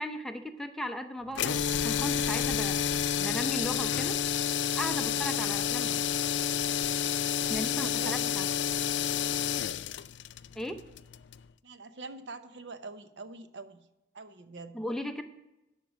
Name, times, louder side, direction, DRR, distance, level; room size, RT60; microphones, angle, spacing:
voice 1, 0.0-2.8 3.2-4.2 4.8-6.0 7.5-8.5 10.6-10.8 14.7-15.2, equal, ahead, 6 dB, 0.6 m, -36 dB
sound 1, 1.3-11.4, left 8 dB, 85° left, 0.4 m, -30 dB
voice 2, 7.4-8.3 9.4-9.8 11.6-13.8 14.1-14.8, right 3 dB, 85° right, 10 dB, 0.8 m, -45 dB
12.0 x 5.6 x 6.2 m, 0.97 s
head